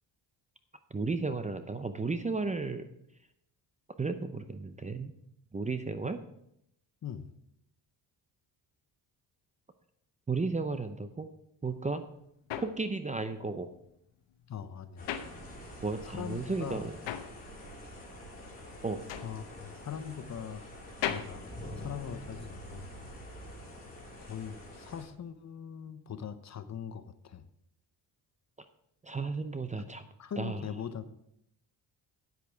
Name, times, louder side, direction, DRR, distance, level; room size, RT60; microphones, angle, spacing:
voice 1, 0.9-2.9 4.0-5.1 5.5-6.2 10.3-11.3 11.6-12.0 12.6-13.7 15.8-17.0 18.8-19.0 29.0-30.1 30.4-30.6, right 3 dB, 15° right, 9 dB, 0.6 m, -33 dB
sound 1, 11.7-16.0 16.3-22.5, left 9 dB, 75° left, 1.0 m, -40 dB
voice 2, 14.5-15.1 16.0-16.9 19.2-20.6 21.1-21.5 21.8-22.9 24.2-27.5 30.2-31.1, left 8 dB, 40° left, 11 dB, 0.8 m, -41 dB
sound 2, 15.0-25.0, equal, 20° left, 3.4 m, -46 dB
9.2 x 8.2 x 4.5 m, 0.77 s
cardioid pair, 105°, 44 cm